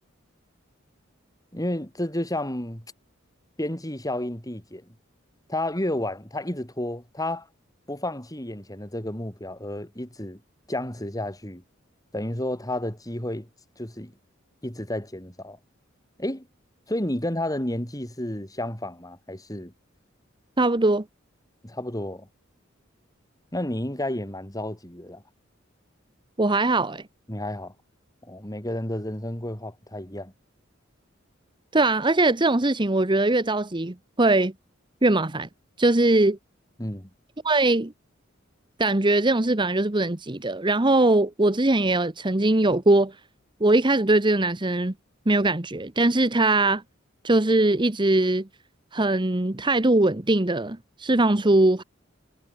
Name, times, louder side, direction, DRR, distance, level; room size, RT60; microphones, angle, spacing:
voice 1, 1.5-2.8 3.6-4.8 5.5-7.5 7.9-10.4 10.7-11.6 12.1-13.5 13.8-14.1 14.6-15.6 16.2-16.5 16.9-19.7 21.6-22.3 23.5-25.2 27.3-27.7 28.2-30.3 36.8-37.1, left 1 dB, 20° left, 4.6 m, -31 dB
voice 2, 20.6-21.0 26.4-27.0 31.7-34.5 35.0-35.5 35.8-36.4 37.4-37.9 38.8-43.1 43.6-44.9 45.3-46.8 47.2-48.5 48.9-51.8, right 2 dB, 25° right, 1.1 m, -21 dB
head